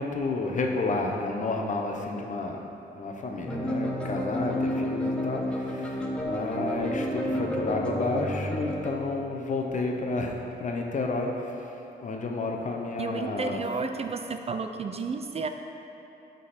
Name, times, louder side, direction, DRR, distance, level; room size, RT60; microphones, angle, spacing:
voice 1, 0.0-2.6 2.9-11.5 12.0-13.6, left 3 dB, 45° left, 1 dB, 1.0 m, -31 dB
sound 1, 3.5-9.0, equal, 5° left, 1.1 m, -30 dB
voice 2, 13.0-15.5, right 4 dB, 35° right, 6 dB, 0.4 m, -32 dB
11.5 x 3.9 x 4.3 m, 3.0 s
cardioid pair, 80°, 18 cm